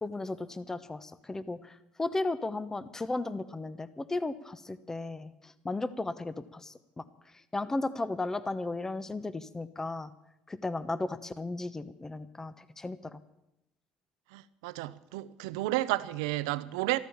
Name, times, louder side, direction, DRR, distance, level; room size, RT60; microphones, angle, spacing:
voice 1, 0.0-7.0 7.5-10.1 10.5-13.2, left 2 dB, 15° left, 1.0 m, -35 dB
voice 2, 14.3-17.0, right 17 dB, 90° right, 0.7 m, -32 dB
13.5 x 13.5 x 7.2 m
supercardioid pair, 85°, 3 cm